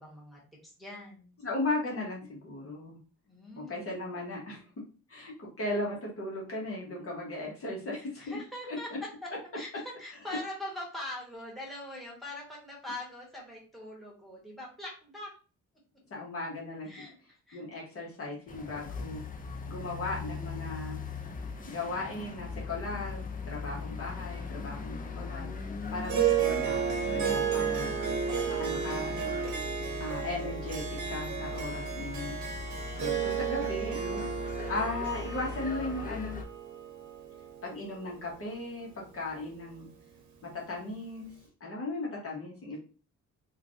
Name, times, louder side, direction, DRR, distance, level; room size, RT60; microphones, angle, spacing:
voice 1, 0.0-1.3 3.2-3.8 7.9-15.3 16.8-17.6 32.7-33.8, left 1 dB, ahead, -3 dB, 1.3 m, -43 dB
voice 2, 1.4-3.0 3.6-4.6 5.1-8.2 8.7-8.8 10.3-10.4 16.1-16.9 17.5-19.2 19.7-21.0 21.7-28.2 28.5-29.2 30.0-32.4 33.0-36.4 37.6-39.9 40.4-41.3 41.6-42.8, left 2 dB, 50° left, -3 dB, 1.1 m, -37 dB
sound 1, 18.5-36.4, left 4 dB, 30° left, 0.4 m, -39 dB
Harp, 26.0-38.6, right 8 dB, 75° right, 0.8 m, -33 dB
3.1 x 2.4 x 2.5 m, 0.37 s
cardioid pair, 90°, 30 cm